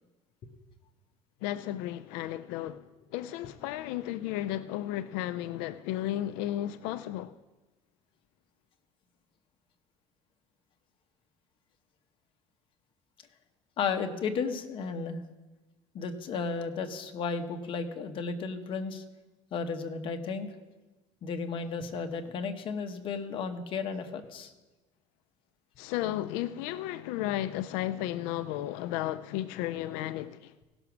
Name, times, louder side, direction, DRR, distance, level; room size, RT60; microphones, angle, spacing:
voice 1, 1.4-2.9 3.1-7.4 25.8-30.5, left 13 dB, 85° left, 0.4 m, -33 dB
voice 2, 13.8-15.2 15.9-19.0 19.5-20.5 21.2-24.5, left 5 dB, 40° left, 0.9 m, -34 dB
16.5 x 6.1 x 5.9 m
cardioid pair, 155°, 14 cm